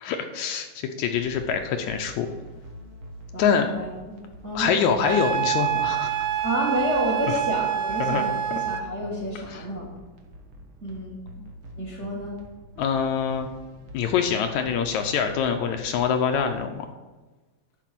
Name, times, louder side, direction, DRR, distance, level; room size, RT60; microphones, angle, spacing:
voice 1, 0.0-2.3 3.4-3.7 4.6-6.3 8.0-8.2 9.5-9.6 11.4-11.5 12.8-13.5 13.9-16.9, left 7 dB, 75° left, 5 dB, 1.9 m, -25 dB
sound 1, 1.1-16.5, equal, 60° right, 1.4 m, -45 dB
voice 2, 3.3-4.7 6.4-9.9 10.8-11.2 11.8-12.4, equal, 35° right, -2 dB, 1.1 m, -30 dB
Wind instrument woodwind instrument, 5.0-8.9, right 10 dB, 80° right, 1.8 m, -26 dB
11.0 x 4.5 x 5.9 m, 1.2 s
omnidirectional pair, 3.6 m